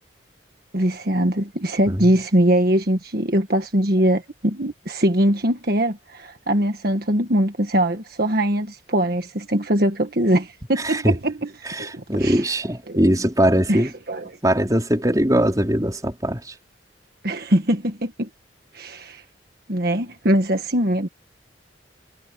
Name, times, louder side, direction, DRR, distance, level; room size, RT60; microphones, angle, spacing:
voice 1, 0.7-11.3 11.6-12.5 12.9-13.1 13.7-14.4 17.2-18.3 18.7-19.2 19.7-21.1, right 1 dB, 55° right, 1.6 m, -22 dB
voice 2, 10.8-11.2 11.6-13.9 14.4-16.5, equal, 20° right, 4.7 m, -21 dB
head